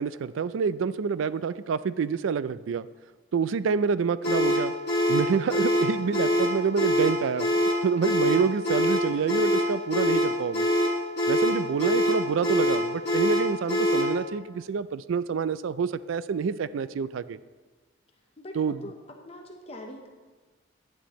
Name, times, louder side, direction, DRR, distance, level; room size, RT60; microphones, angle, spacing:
voice 1, 0.0-2.9 3.3-4.7 5.1-7.5 7.8-10.7 11.3-17.4 18.5-18.8, right 6 dB, 80° right, 16 dB, 0.3 m, -27 dB
sound 1, 4.2-14.2, left 1 dB, 55° left, 1.7 m, -24 dB
voice 2, 18.4-19.0 19.2-20.1, left 1 dB, 30° left, 2 dB, 0.9 m, -42 dB
10.0 x 9.8 x 3.1 m, 1.3 s
head